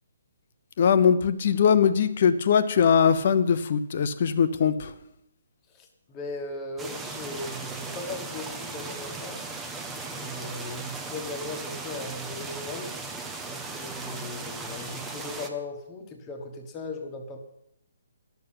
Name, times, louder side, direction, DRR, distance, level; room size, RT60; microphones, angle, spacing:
voice 1, 0.8-4.9, left 7 dB, 40° left, 12 dB, 0.9 m, -21 dB
voice 2, 5.8-9.5 10.2-12.9 13.4-17.4, left 2 dB, 15° left, 3 dB, 1.4 m, -38 dB
sound 1, 6.8-15.5, right 3 dB, 5° right, 0.8 m, -37 dB
12.0 x 6.9 x 8.7 m, 0.78 s
hypercardioid pair, 170°, 0 cm